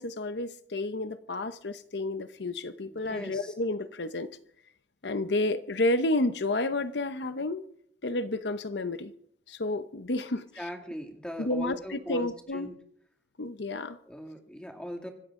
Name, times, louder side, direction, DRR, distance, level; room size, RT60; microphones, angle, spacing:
voice 1, 0.0-4.3 5.0-7.6 8.0-9.1 9.5-10.7 11.4-12.7 13.4-14.0, left 2 dB, 70° left, 0.8 m, -31 dB
voice 2, 2.8-3.5 10.6-12.7 14.1-15.1, equal, 5° left, 2.3 m, -40 dB
25.0 x 12.5 x 3.7 m
head